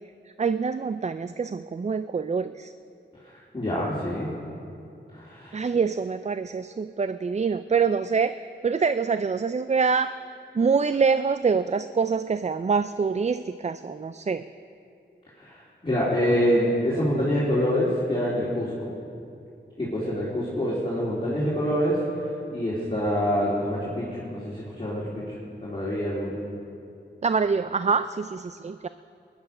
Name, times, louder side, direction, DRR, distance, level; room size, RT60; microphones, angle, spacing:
voice 1, 0.4-2.7 5.5-8.4 8.6-10.1 10.6-14.4 27.2-28.9, right 5 dB, 35° right, 12 dB, 0.4 m, -25 dB
voice 2, 3.2-4.3 5.1-5.6 15.3-18.9 19.8-22.2 22.5-26.3, equal, 25° left, -8 dB, 3.2 m, -26 dB
21.5 x 10.5 x 5.5 m, 2.6 s
wide cardioid pair, 70°, 19 cm